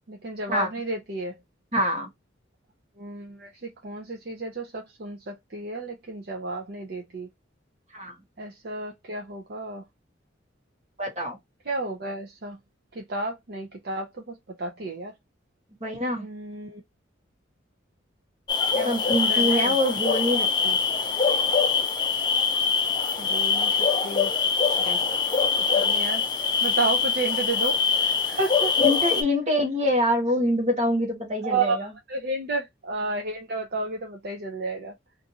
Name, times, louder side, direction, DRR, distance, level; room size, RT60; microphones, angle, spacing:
voice 1, 0.1-1.3 3.0-3.5 3.8-7.3 8.4-9.8 11.7-12.6 13.0-14.1 14.6-15.1 16.2-16.8 18.7-19.0 19.3-19.7 23.2-23.7 24.0-24.3 25.7-26.2 26.6-28.7 31.4-31.8 32.1-34.9, right 3 dB, 55° right, 0.6 m, -31 dB
voice 2, 1.7-2.1 7.9-8.1 11.0-11.4 15.8-16.3 18.8-20.8 24.8-25.0 26.6-26.7 28.8-31.9, left 1 dB, 35° right, 1.3 m, -25 dB
sound 1, 18.5-29.2, left 5 dB, 20° left, 0.4 m, -23 dB
2.6 x 2.4 x 2.8 m
head